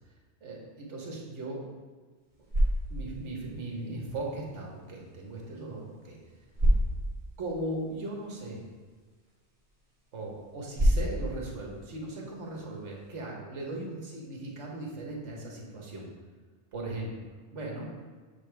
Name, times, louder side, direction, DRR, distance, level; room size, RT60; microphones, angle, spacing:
voice 1, 0.4-1.6 2.9-6.2 7.4-8.6 10.1-16.1 16.7-17.1 17.5-17.9, right 2 dB, 75° right, -2 dB, 1.5 m, -38 dB
sound 1, 2.1-13.2, equal, 30° right, 1.7 m, -33 dB
7.1 x 4.0 x 3.4 m, 1.4 s
omnidirectional pair, 1.3 m